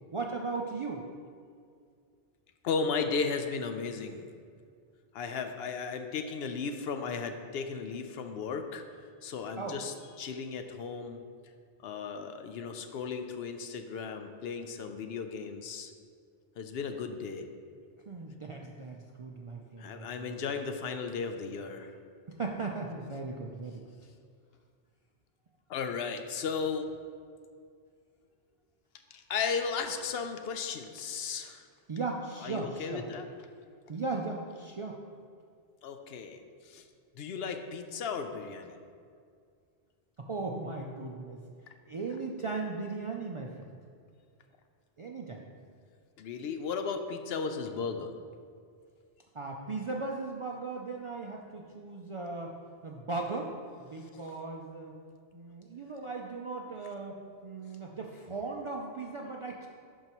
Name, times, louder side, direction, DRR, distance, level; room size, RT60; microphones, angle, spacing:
voice 1, 0.1-1.0 9.6-9.8 18.1-20.4 22.3-23.9 31.9-33.1 33.9-35.0 40.2-41.4 41.8-43.7 45.0-45.4 49.3-52.6 52.8-53.5 53.8-55.0 55.3-59.7, right 3 dB, 50° right, 0 dB, 0.3 m, -37 dB
voice 2, 2.6-4.3 5.1-8.8 9.2-11.2 11.8-15.9 16.6-17.4 19.8-21.9 25.7-26.9 29.1-31.7 32.4-33.3 35.8-36.8 37.2-38.7 46.2-48.1, left 5 dB, 75° left, 7 dB, 0.8 m, -35 dB
11.0 x 4.5 x 3.0 m, 2.2 s
omnidirectional pair, 1.1 m